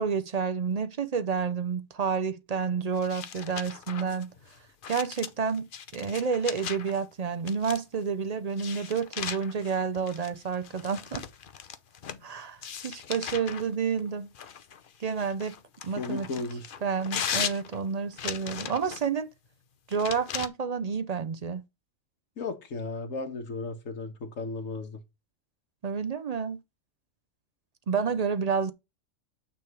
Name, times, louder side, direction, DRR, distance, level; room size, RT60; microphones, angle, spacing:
voice 1, 0.0-4.3 4.9-11.2 12.2-14.3 15.0-15.6 15.8-16.3 16.8-19.3 19.9-21.6 25.8-26.6 27.9-28.7, right 6 dB, 45° right, 0.5 m, -30 dB
sound 1, 3.0-7.0 7.5-8.0 8.5-12.2 12.6-13.7 14.3-19.1 19.9-20.5, left 7 dB, 50° left, 0.8 m, -38 dB
voice 2, 16.0-16.7 22.4-25.0, left 3 dB, 80° left, 1.7 m, -35 dB
9.1 x 3.4 x 4.7 m
omnidirectional pair, 1.4 m